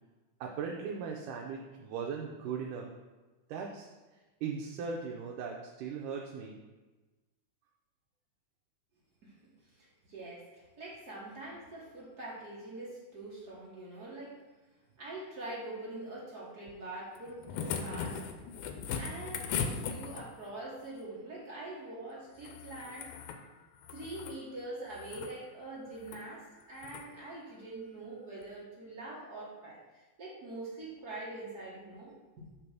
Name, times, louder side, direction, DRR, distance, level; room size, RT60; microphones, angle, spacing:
voice 1, 0.4-2.9 3.5-3.9 4.4-6.6, right 6 dB, 85° right, 0 dB, 2.1 m, -38 dB
voice 2, 9.6-14.4 15.0-18.3 18.9-23.2 23.9-32.1, right 2 dB, 60° right, -6 dB, 1.0 m, -44 dB
sound 1, 17.2-20.5 22.4-23.4 23.8-24.4 24.9-25.3 26.0-26.2 26.8-27.1 28.4-28.5, left 6 dB, 80° left, 1.9 m, -38 dB
6.7 x 3.4 x 6.0 m, 1.2 s
omnidirectional pair, 3.6 m